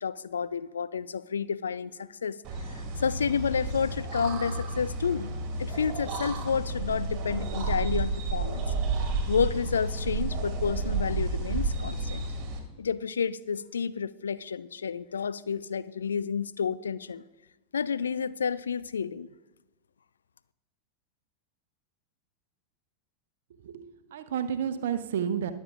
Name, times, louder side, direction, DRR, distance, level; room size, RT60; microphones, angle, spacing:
voice 1, 0.0-2.4 2.7-8.7 9.3-12.2 12.8-17.2 17.7-19.3, left 6 dB, 70° left, 17 dB, 0.3 m, -30 dB
sound 1, 2.4-12.6, right 3 dB, 35° right, 1.9 m, -31 dB
voice 2, 23.6-25.5, right 8 dB, 60° right, 11 dB, 0.7 m, -31 dB
21.0 x 7.2 x 2.4 m, 1.1 s
figure-of-eight pair, 90°, 0 cm